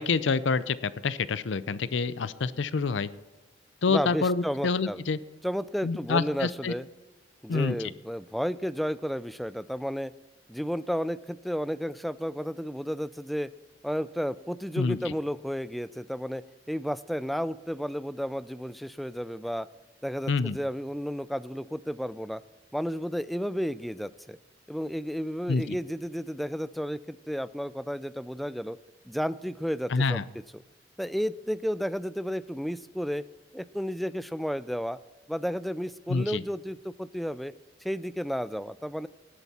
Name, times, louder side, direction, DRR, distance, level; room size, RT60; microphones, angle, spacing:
voice 1, 0.0-3.1 3.8-5.2 5.8-6.7 7.5-7.8 14.8-15.0 20.3-20.6 25.5-25.8 29.9-30.2 36.1-36.4, left 4 dB, 80° left, 16 dB, 0.5 m, -27 dB
voice 2, 3.9-5.0 5.4-6.9 7.4-10.1 10.5-13.5 13.8-19.7 20.0-22.4 22.7-24.4 24.7-28.8 29.1-30.2 30.5-30.6 31.0-33.2 33.5-35.0 35.3-37.5 37.8-39.1, equal, ahead, 16 dB, 0.3 m, -32 dB
18.5 x 8.1 x 4.2 m, 1.2 s
head